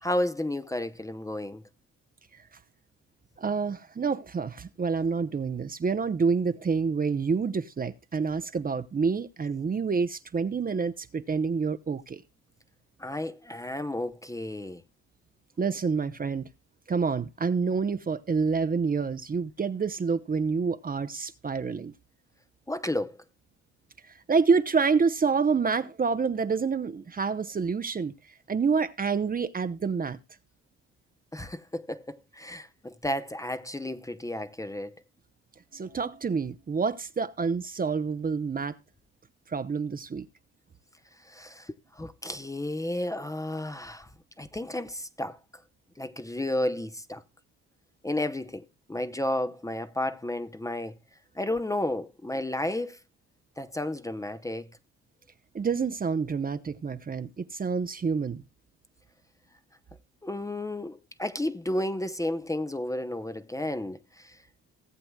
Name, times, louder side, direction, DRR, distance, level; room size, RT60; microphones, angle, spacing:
voice 1, 0.0-1.6 13.0-14.8 22.7-23.2 31.3-34.9 41.3-44.1 44.4-45.4 46.0-47.2 48.0-48.6 48.9-51.0 51.4-53.0 53.6-54.7 60.2-64.4, left 1 dB, 10° left, 0.7 m, -32 dB
voice 2, 3.4-12.2 15.6-16.5 16.9-21.9 24.3-28.1 28.5-30.2 35.7-38.8 39.5-40.3 55.5-58.4, right 5 dB, 30° right, 0.7 m, -28 dB
17.5 x 7.8 x 2.3 m
cardioid pair, 90°, 30 cm